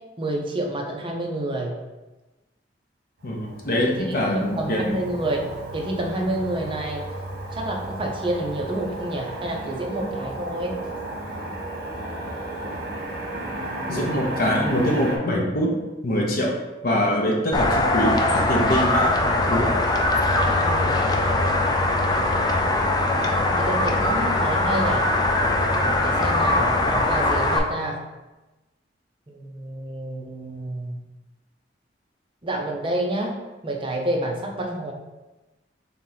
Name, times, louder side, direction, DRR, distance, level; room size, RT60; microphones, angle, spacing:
voice 1, 0.2-1.8 3.8-5.4 5.7-7.0 7.5-10.8 20.6-21.0 23.6-25.1 26.0-28.0 29.3-31.0 32.4-33.4 33.6-34.9, right 1 dB, 30° right, 0 dB, 0.6 m, -28 dB
voice 2, 3.2-4.9 13.9-15.7 16.0-16.6 16.8-19.7, equal, 55° left, -1 dB, 0.7 m, -24 dB
Motor vehicle (road), 3.2-15.2, right 1 dB, 60° right, 1.2 m, -33 dB
sound 1, 17.5-27.6, left 2 dB, 20° left, 0.4 m, -21 dB
3.6 x 2.9 x 3.9 m, 1.1 s
head